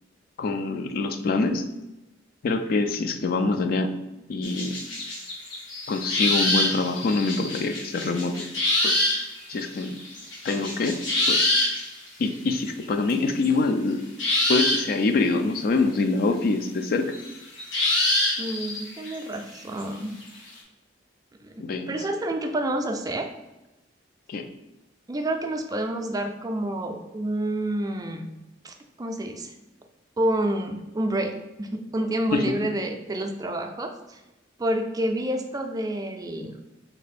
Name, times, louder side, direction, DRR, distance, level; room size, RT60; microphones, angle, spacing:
voice 1, 0.4-1.6 2.4-3.9 4.3-4.8 5.9-8.5 8.8-9.0 9.5-10.0 10.4-11.0 11.3-11.5 12.2-14.0 14.5-17.1 21.6-22.0 24.3-24.4 32.3-32.4, left 3 dB, 50° left, 7 dB, 0.4 m, -25 dB
sound 1, 4.4-11.8 12.8-13.1 13.4-13.5 14.2-15.1 17.1-19.8 20.2-20.3, left 2 dB, 80° left, 1.1 m, -25 dB
voice 2, 18.4-20.1 21.4-23.3 25.1-28.3 28.6-29.5 30.2-31.3 31.6-34.2 34.6-36.5, right 1 dB, 20° right, 4 dB, 0.4 m, -28 dB
3.3 x 3.0 x 4.1 m, 1.0 s
head